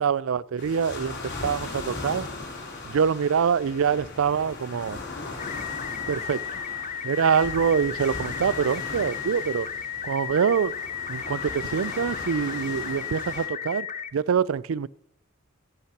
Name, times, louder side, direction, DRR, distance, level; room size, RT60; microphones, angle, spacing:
voice 1, 0.0-2.3 2.8-5.0 6.1-6.4 7.0-9.7 10.0-10.8 11.1-13.9 14.1-14.9, right 7 dB, 75° right, 0.4 m, -25 dB
sound 1, 0.6-13.5, left 3 dB, 55° left, 3.2 m, -38 dB
sound 2, 5.4-14.1, left 8 dB, 35° left, 0.7 m, -34 dB
14.5 x 8.6 x 5.9 m
head